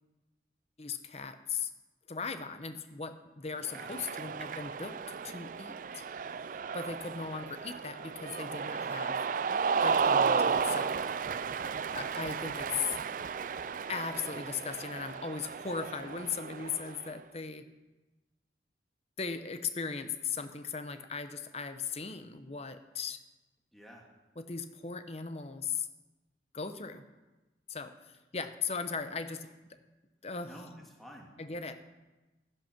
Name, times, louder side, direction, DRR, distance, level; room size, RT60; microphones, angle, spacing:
voice 1, 0.8-1.7 2.1-6.0 6.7-9.2 9.8-10.9 11.9-13.0 13.9-17.7 19.2-23.2 24.4-25.9 26.5-27.0 27.7-29.8 30.2-30.5 31.4-31.8, left 5 dB, 35° left, 10 dB, 0.8 m, -38 dB
voice 2, 3.6-3.9 11.7-12.1 23.7-24.1 30.4-31.3, equal, ahead, -1 dB, 2.0 m, -51 dB
Cheering, 3.6-17.1, right 5 dB, 50° right, 0.4 m, -33 dB
13.0 x 10.0 x 6.0 m, 1.1 s
head